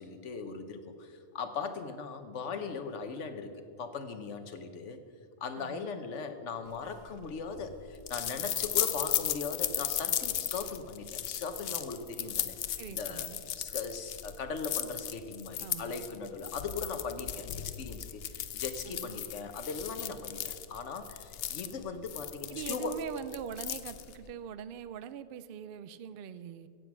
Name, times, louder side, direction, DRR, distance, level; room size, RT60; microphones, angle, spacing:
voice 1, 0.0-5.0 5.4-12.5 12.9-13.3 13.5-23.0, left 5 dB, 85° left, 9 dB, 1.3 m, -39 dB
voice 2, 5.5-5.9 12.8-13.4 15.6-16.0 18.9-19.3 22.5-26.7, right 8 dB, 60° right, 15 dB, 0.6 m, -42 dB
sound 1, 6.9-24.3, left 10 dB, 65° left, 0.8 m, -36 dB
16.0 x 7.9 x 6.0 m, 2.6 s
omnidirectional pair, 1.2 m